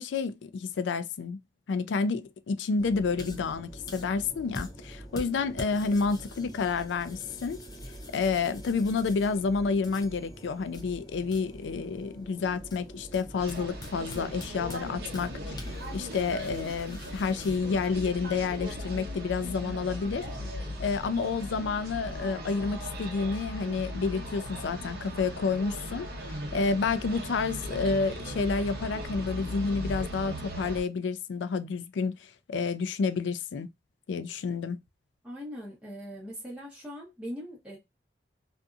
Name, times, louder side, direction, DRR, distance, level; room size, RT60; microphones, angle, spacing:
voice 1, 0.0-1.4 1.7-7.6 8.1-20.3 20.8-26.1 26.5-33.7 34.1-34.8, left 4 dB, 80° left, 0.4 m, -29 dB
sound 1, 2.8-20.9, equal, 20° left, 0.5 m, -45 dB
sound 2, 13.4-30.8, equal, 55° right, 0.9 m, -38 dB
voice 2, 35.2-37.8, equal, 5° right, 1.0 m, -40 dB
2.6 x 2.6 x 2.3 m
head